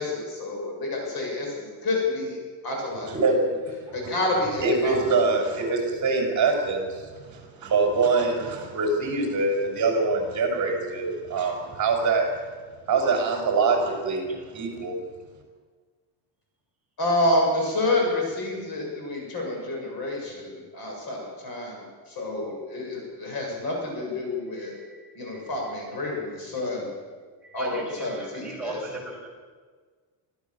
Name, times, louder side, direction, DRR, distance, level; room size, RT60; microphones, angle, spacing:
voice 1, 0.0-2.4 2.6-3.1 3.9-5.0 17.0-24.7 25.2-26.9 27.5-29.0, left 2 dB, 50° left, -1 dB, 7.2 m, -28 dB
voice 2, 3.1-3.6 4.6-12.3 12.9-14.9, right 3 dB, 35° right, 2 dB, 5.8 m, -24 dB
voice 3, 24.7-25.4 27.4-29.3, right 2 dB, ahead, -4 dB, 6.2 m, -39 dB
25.0 x 15.0 x 7.3 m, 1.5 s
cardioid pair, 175°, 48 cm